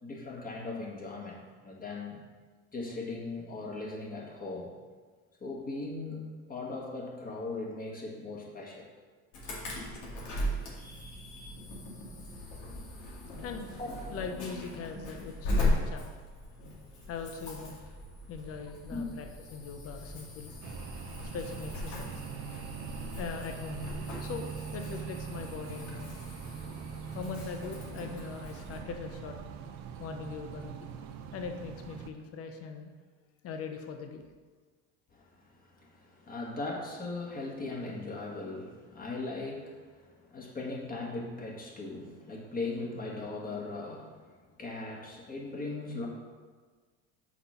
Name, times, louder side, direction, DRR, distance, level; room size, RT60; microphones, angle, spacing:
voice 1, 0.0-2.2 2.7-4.7 5.4-8.9 13.3-13.4 13.8-14.0 17.0-17.1 18.9-19.1 35.1-46.1, left 3 dB, 25° left, -2 dB, 1.8 m, -39 dB
Insect / Alarm, 9.3-28.8, left 1 dB, 65° left, 2.1 m, -38 dB
voice 2, 13.4-13.8 14.1-16.1 17.1-17.8 18.3-20.5 21.2-22.1 23.2-26.2 27.1-29.4 30.0-30.9 31.3-32.9 33.4-34.3, left 5 dB, 45° left, 5 dB, 0.9 m, -41 dB
sound 1, 20.6-32.1, right 7 dB, 60° right, 0.7 m, -42 dB
5.9 x 4.1 x 5.8 m, 1.4 s
supercardioid pair, 100°, 32 cm